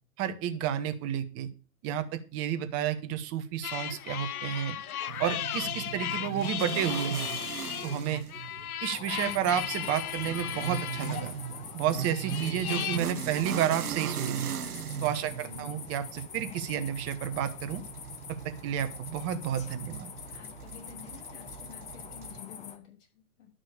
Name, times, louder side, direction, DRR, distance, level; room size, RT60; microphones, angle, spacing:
voice 1, 0.2-1.5 1.8-4.8 5.2-7.3 7.8-8.2 8.8-11.3 11.7-14.5 15.0-17.8 18.4-20.1, right 9 dB, 30° right, 9 dB, 1.6 m, -31 dB
sound 1, 3.6-13.0, left 10 dB, 70° left, 1.0 m, -36 dB
sound 2, 5.1-22.4, right 9 dB, 75° right, 1.0 m, -39 dB
sound 3, 8.9-22.8, left 7 dB, 15° left, 1.0 m, -45 dB
voice 2, 15.2-15.8 20.3-23.5, left 7 dB, 50° left, 1 dB, 6.3 m, -50 dB
12.0 x 6.1 x 6.6 m, 0.34 s
hypercardioid pair, 120°, 45 cm